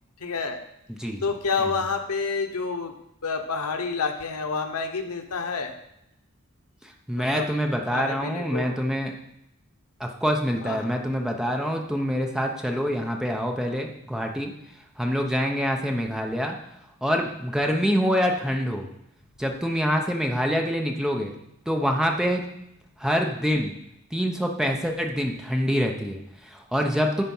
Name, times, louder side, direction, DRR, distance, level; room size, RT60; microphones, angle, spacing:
voice 1, 0.2-0.6 1.2-2.9 3.2-5.7 7.3-7.5 7.9-8.7 10.6-10.9, left 4 dB, 85° left, 5 dB, 1.0 m, -28 dB
voice 2, 0.9-1.2 1.6-1.7 6.8-9.1 10.0-14.5 15.0-16.6 17.0-18.9 19.4-21.4 21.7-22.4 23.0-23.8 24.1-27.2, equal, 5° right, 2 dB, 0.7 m, -26 dB
10.5 x 4.3 x 5.5 m, 0.80 s
head